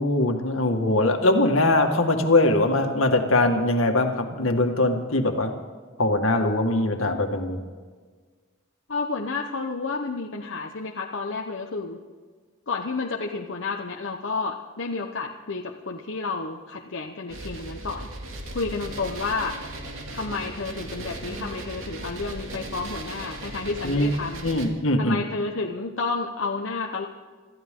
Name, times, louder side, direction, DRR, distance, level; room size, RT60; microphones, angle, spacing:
voice 1, 0.0-5.5 6.0-7.6 23.8-24.1 24.4-25.2, left 2 dB, 85° left, 4 dB, 1.9 m, -22 dB
voice 2, 8.9-12.0 12.7-18.1 18.5-19.5 20.1-24.5 25.0-27.1, left 3 dB, 70° left, 1 dB, 1.0 m, -30 dB
sound 1, 17.3-24.7, right 1 dB, 85° right, 2.5 m, -37 dB
26.5 x 14.5 x 3.8 m, 1.5 s
head